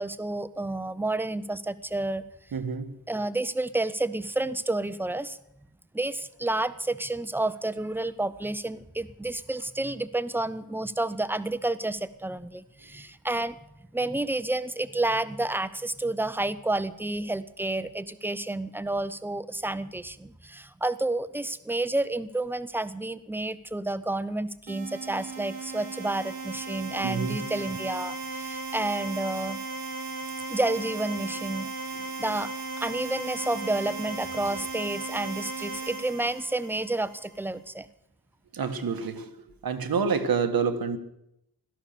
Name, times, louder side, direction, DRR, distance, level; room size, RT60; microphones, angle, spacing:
voice 1, 0.0-2.3 3.1-5.4 5.9-13.6 13.9-29.6 30.5-37.9, right 2 dB, 5° right, 14 dB, 0.5 m, -30 dB
voice 2, 2.5-3.0 27.0-27.4 38.5-39.3 39.6-41.0, right 5 dB, 90° right, 8 dB, 1.4 m, -27 dB
sound 1, 24.7-37.4, right 4 dB, 65° right, 1.4 m, -36 dB
16.5 x 13.0 x 6.7 m, 0.80 s
wide cardioid pair, 155°, 35 cm